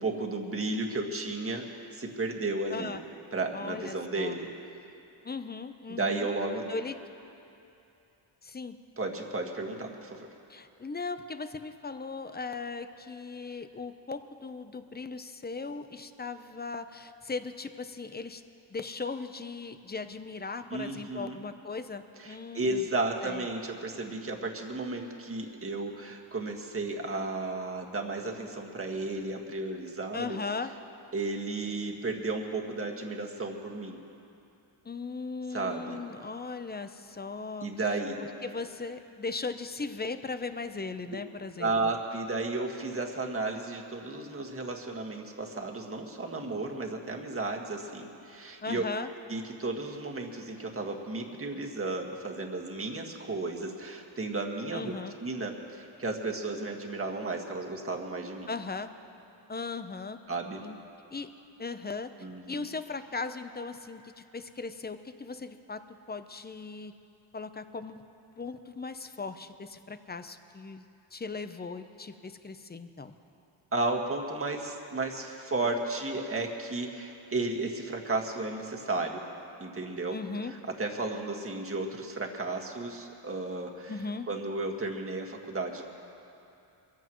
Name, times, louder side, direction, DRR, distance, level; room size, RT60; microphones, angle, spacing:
voice 1, 0.0-1.7 1.9-2.9 3.3-4.5 5.9-6.7 9.0-10.3 20.7-21.4 22.2-30.4 31.1-34.0 35.5-36.0 37.6-38.2 41.6-48.8 49.3-54.9 55.2-58.5 60.3-60.6 62.2-62.7 73.7-79.2 79.6-80.2 80.8-83.9 84.3-85.8, right 2 dB, 25° right, 1 dB, 1.7 m, -33 dB
voice 2, 3.5-4.4 5.2-6.3 6.7-7.0 8.4-8.8 10.5-18.4 18.7-22.9 23.2-23.5 30.1-30.7 34.8-37.7 38.4-41.9 48.6-49.1 54.7-55.1 58.5-58.9 59.5-60.2 60.6-60.8 61.1-61.3 61.6-62.1 62.5-66.9 67.3-68.0 68.4-73.1 80.1-80.5 83.9-84.3, left 4 dB, 20° left, 10 dB, 0.7 m, -38 dB
22.5 x 15.0 x 3.1 m, 2.8 s
cardioid pair, 75°, 48 cm